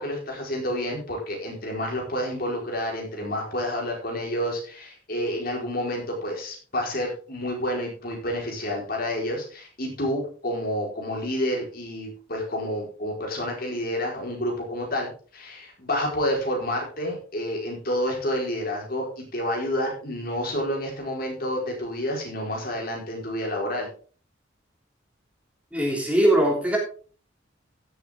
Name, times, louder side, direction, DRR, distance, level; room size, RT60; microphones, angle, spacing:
voice 1, 0.0-23.9, equal, 50° left, 0 dB, 4.6 m, -29 dB
voice 2, 25.7-26.8, right 1 dB, 5° right, -1 dB, 3.2 m, -21 dB
16.0 x 7.7 x 3.7 m, 0.39 s
head